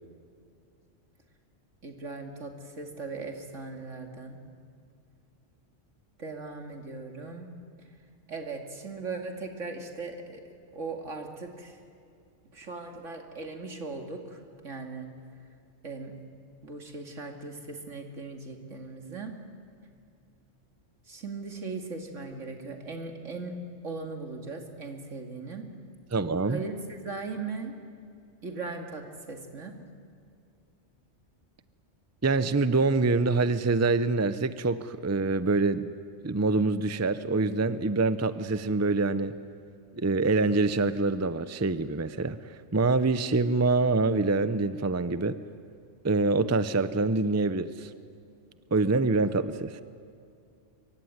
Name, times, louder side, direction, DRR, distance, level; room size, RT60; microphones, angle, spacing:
voice 1, 1.8-4.4 6.2-7.5 8.3-10.4 10.7-11.8 12.4-15.1 15.8-16.1 16.6-19.3 21.1-23.5 23.8-25.6 26.5-27.7 28.4-29.7, right 3 dB, 80° right, 3 dB, 2.7 m, -38 dB
voice 2, 26.1-26.6 32.2-35.9 36.2-39.3 39.9-45.3 46.0-47.9 48.7-49.8, right 3 dB, 15° right, 13 dB, 0.6 m, -25 dB
24.0 x 24.0 x 9.7 m, 2.5 s
omnidirectional pair, 1.3 m